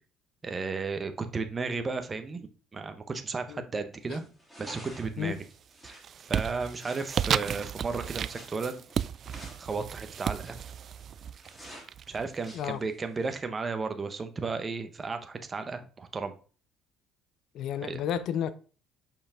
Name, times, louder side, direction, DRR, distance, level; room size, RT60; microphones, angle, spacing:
voice 1, 0.4-4.3 4.6-5.4 5.8-6.0 6.3-8.8 9.6-10.6 12.1-16.3 17.8-18.0, right 4 dB, 25° right, 1.0 m, -34 dB
sound 1, 4.0-13.3, equal, 10° left, 3.0 m, -51 dB
sound 2, 5.0-5.5 5.8-12.5, right 9 dB, 45° right, 0.3 m, -34 dB
voice 2, 17.5-18.5, left 9 dB, 65° left, 0.7 m, -31 dB
7.0 x 5.2 x 3.7 m
cardioid pair, 120°, 0 cm